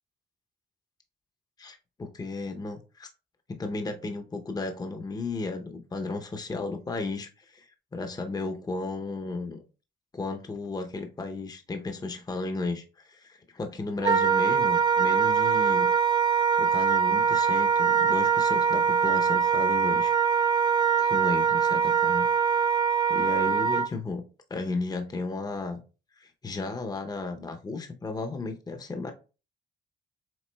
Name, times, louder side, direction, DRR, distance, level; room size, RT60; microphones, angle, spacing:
voice 1, 1.6-3.1 3.5-9.6 10.1-15.9 16.3-20.1 21.0-22.3 23.1-24.2 24.5-25.8 26.2-29.1, left 3 dB, 20° left, 6 dB, 0.6 m, -34 dB
Wind instrument woodwind instrument, 14.0-23.9, right 7 dB, 20° right, 0.4 m, -23 dB
6.0 x 3.6 x 2.2 m, 0.34 s
cardioid pair, 90°, 20 cm